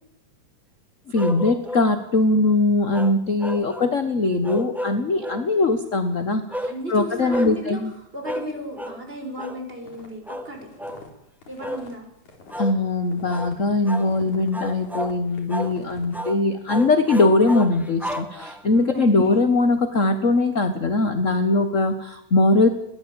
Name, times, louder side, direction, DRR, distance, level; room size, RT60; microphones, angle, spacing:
voice 1, 1.1-7.9 12.6-22.7, left 2 dB, 40° left, 9 dB, 1.2 m, -21 dB
sound 1, 1.2-1.9 2.9-3.9 4.4-5.5 6.5-6.8 7.3-7.6 8.2-8.5 8.8-9.0 9.4-9.6 10.3-10.5 10.8-11.0 11.6-11.9 12.5-12.8 13.3-13.5 13.9-14.1 14.5-15.2 15.5-15.8 16.1-16.4 16.7-18.8, equal, ahead, 1.0 m, -31 dB
voice 2, 6.7-10.6 11.5-12.1 18.9-19.5, equal, 15° right, 3 dB, 6.9 m, -35 dB
sound 2, 9.8-13.6 13.9-16.2, left 3 dB, 75° left, 5.4 m, -46 dB
21.5 x 19.5 x 9.0 m, 0.81 s
omnidirectional pair, 3.3 m